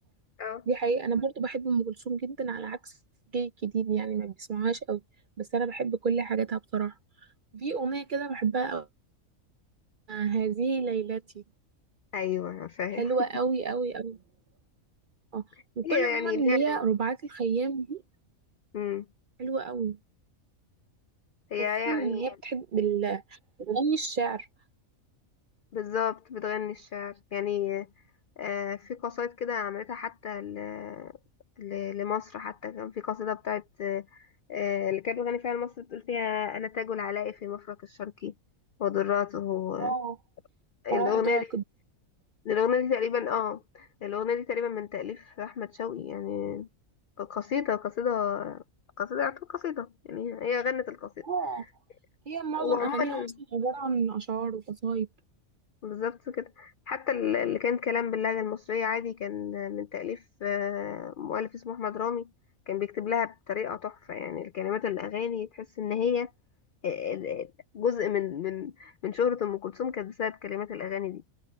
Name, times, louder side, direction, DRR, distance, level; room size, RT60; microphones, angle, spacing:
voice 1, 0.7-2.9 3.3-5.0 5.4-6.9 7.5-8.9 10.1-11.2 12.9-14.2 15.3-15.4 15.8-18.0 19.4-20.0 21.6-24.5 39.8-40.2 40.9-41.6 51.2-51.6 52.3-53.2 53.5-55.1, right 5 dB, 55° right, 0.6 m, -29 dB
voice 2, 12.1-13.1 15.8-16.8 18.7-19.1 21.5-22.4 25.7-27.9 28.4-31.1 31.6-38.3 38.8-39.9 40.8-41.5 42.5-46.7 47.2-48.6 49.0-51.3 52.6-53.4 55.8-62.3 62.7-66.3 66.8-71.2, left 8 dB, 75° left, 0.4 m, -31 dB
omnidirectional pair, 1.4 m